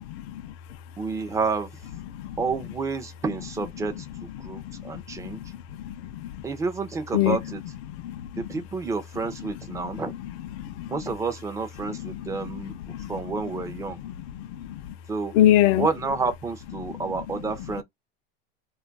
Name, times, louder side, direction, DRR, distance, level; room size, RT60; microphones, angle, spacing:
voice 1, 0.1-0.5 2.2-2.4 4.4-5.4 5.8-6.4 7.1-7.4 8.0-8.4 10.6-10.9 12.0-12.2 12.6-13.1 14.0-14.8 15.3-15.9, left 13 dB, 75° left, 0.5 m, -25 dB
voice 2, 1.0-1.7 2.4-5.4 6.4-7.6 8.4-10.1 10.9-12.8 13.1-14.0 15.1-15.3 15.8-17.8, right 4 dB, 10° right, 0.3 m, -30 dB
2.3 x 2.2 x 3.8 m
supercardioid pair, 145°, 31 cm